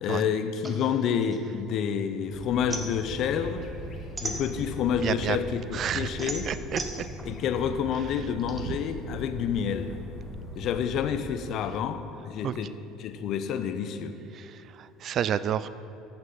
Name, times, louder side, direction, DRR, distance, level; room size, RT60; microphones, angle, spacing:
voice 1, 0.0-3.6 4.2-6.5 7.2-10.0 10.6-12.7 13.0-14.1, left 7 dB, 55° left, 9 dB, 0.6 m, -29 dB
sound 1, 0.6-2.1 2.4-5.0 5.4-8.6, right 2 dB, 20° right, 1.3 m, -38 dB
sound 2, 2.3-11.3, equal, 35° left, 1.8 m, -40 dB
voice 2, 5.0-5.4 5.7-7.1 12.4-12.5 14.3-15.7, right 9 dB, 45° right, 15 dB, 0.4 m, -30 dB
14.0 x 6.2 x 4.1 m, 2.7 s
hypercardioid pair, 65°, 0 cm